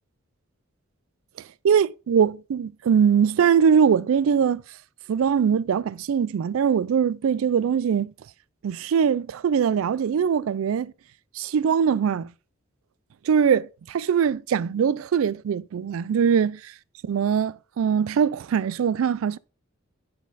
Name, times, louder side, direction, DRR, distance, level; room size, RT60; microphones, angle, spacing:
voice 1, 1.6-4.6 5.1-8.1 8.6-10.9 11.4-12.3 13.2-16.7 17.0-19.4, right 7 dB, 85° right, 0.3 m, -22 dB
9.7 x 4.1 x 4.0 m
head